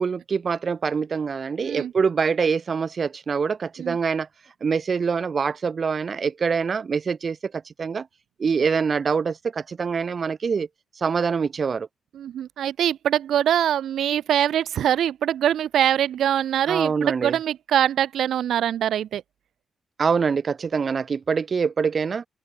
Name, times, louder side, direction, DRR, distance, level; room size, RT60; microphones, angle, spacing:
voice 1, 0.0-4.3 4.6-8.1 8.4-10.7 11.0-11.9 16.7-17.4 20.0-22.3, right 5 dB, 35° right, 1.3 m, -24 dB
voice 2, 12.1-19.2, right 10 dB, 85° right, 1.6 m, -23 dB
open air
wide cardioid pair, 170°, 0 cm